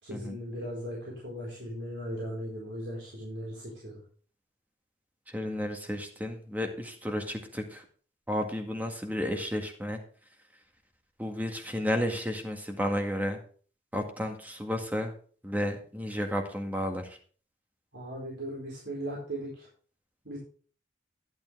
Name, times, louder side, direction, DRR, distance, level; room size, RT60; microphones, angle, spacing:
voice 1, 0.0-4.0 17.9-19.7 20.2-20.4, equal, 80° right, -4 dB, 4.4 m, -38 dB
voice 2, 5.3-7.8 8.3-10.0 11.2-13.4 13.9-15.1 15.4-17.2, equal, 10° right, 4 dB, 1.9 m, -32 dB
11.5 x 10.5 x 3.4 m, 0.42 s
head